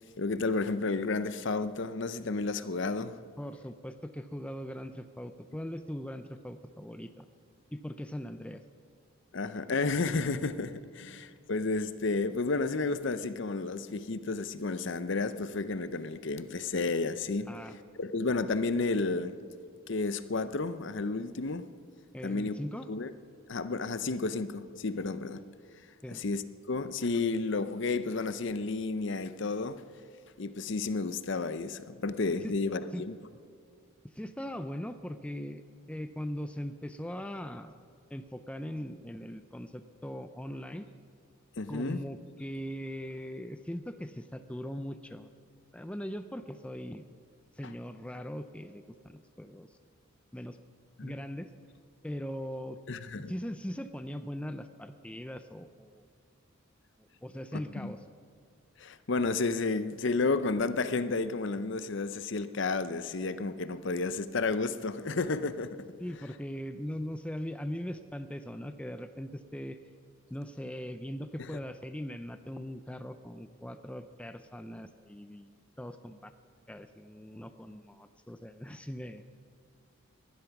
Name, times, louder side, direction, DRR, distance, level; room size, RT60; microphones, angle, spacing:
voice 1, 0.2-3.1 9.3-17.5 18.0-19.4 19.9-21.6 22.2-22.5 22.9-23.1 23.5-25.4 26.1-26.4 26.7-29.8 30.4-33.2 41.6-42.0 51.0-51.2 52.9-53.3 57.8-57.9 58.8-65.9, left 3 dB, 55° left, 0.6 m, -31 dB
voice 2, 3.4-7.3 7.7-8.6 17.5-17.8 22.1-22.9 26.0-26.2 32.4-32.5 32.9-33.0 34.1-35.6 35.9-37.7 38.1-40.9 41.7-45.3 45.7-47.1 47.5-49.8 50.3-50.6 51.0-51.5 52.0-52.8 53.1-56.0 57.0-58.0 66.0-69.8 70.3-76.3 76.7-79.2, equal, 5° left, 0.4 m, -40 dB
19.5 x 11.5 x 5.9 m
head